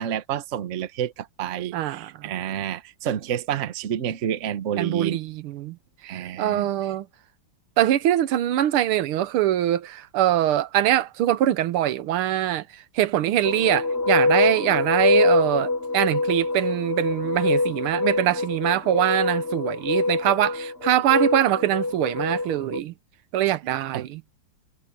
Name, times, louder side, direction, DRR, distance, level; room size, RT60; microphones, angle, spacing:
voice 1, 0.0-5.2 6.0-6.7 23.9-24.1, right 9 dB, 45° right, 1.0 m, -29 dB
voice 2, 1.7-2.4 4.8-5.8 6.4-7.1 7.8-22.9 23.3-24.2, right 12 dB, 90° right, 1.7 m, -23 dB
sound 1, 13.4-22.8, left 2 dB, 25° left, 4.1 m, -24 dB
omnidirectional pair, 2.3 m